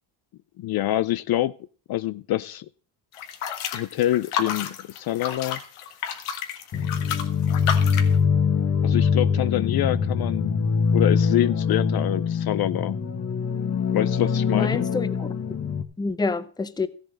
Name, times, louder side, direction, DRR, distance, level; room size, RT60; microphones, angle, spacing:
voice 1, 0.6-1.5 1.9-2.7 3.7-5.6 8.8-10.6 10.9-13.0 13.9-14.9, left 14 dB, 50° left, 0.5 m, -26 dB
sound 1, 3.1-8.2, left 8 dB, 85° left, 1.8 m, -31 dB
sound 2, 6.7-15.8, left 6 dB, 30° left, 1.1 m, -23 dB
voice 2, 14.5-15.6 16.0-16.9, left 3 dB, 10° left, 0.6 m, -28 dB
14.0 x 7.3 x 6.3 m
cardioid pair, 110°, 48 cm